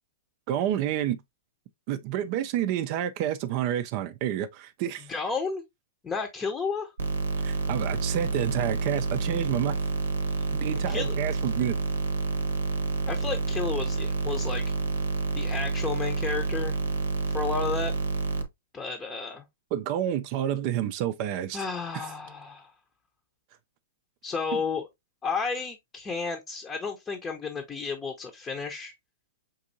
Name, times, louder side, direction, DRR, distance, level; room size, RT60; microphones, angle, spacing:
voice 1, 0.5-1.2 1.9-5.1 7.4-9.8 10.5-11.8 19.7-21.6 21.9-22.0, right 11 dB, 40° right, 0.4 m, -29 dB
voice 2, 5.1-5.6 6.0-6.9 10.9-11.2 13.0-14.7 15.3-16.7 17.3-18.0 18.7-19.4 21.5-22.7 24.2-24.9 25.2-28.9, left 5 dB, 15° left, 0.7 m, -32 dB
sound 1, 7.0-18.4, right 3 dB, 80° right, 0.8 m, -29 dB
5.3 x 2.6 x 2.7 m
hypercardioid pair, 125°, 0 cm